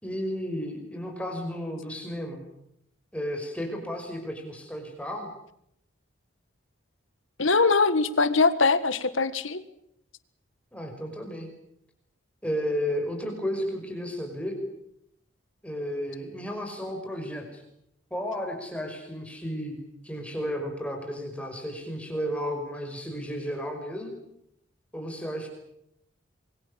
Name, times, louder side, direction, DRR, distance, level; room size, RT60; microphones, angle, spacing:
voice 1, 0.0-2.4 3.1-5.3 10.7-11.5 12.4-14.6 15.6-17.6 18.1-19.8 20.0-24.1 24.9-25.5, equal, 5° left, 3 dB, 5.5 m, -33 dB
voice 2, 7.4-9.6, left 4 dB, 75° left, 13 dB, 1.7 m, -22 dB
27.0 x 23.0 x 7.1 m, 0.75 s
head